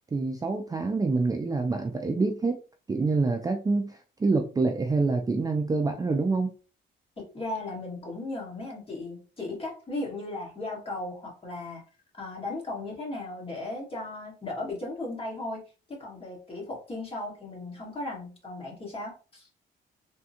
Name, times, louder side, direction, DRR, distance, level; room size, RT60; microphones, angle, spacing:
voice 1, 0.1-2.6 2.9-6.5, right 3 dB, 20° right, 3 dB, 0.4 m, -26 dB
voice 2, 7.2-11.8 12.2-19.5, left 2 dB, 30° left, -3 dB, 1.7 m, -36 dB
3.5 x 2.2 x 2.8 m, 0.36 s
cardioid pair, 90°, 20 cm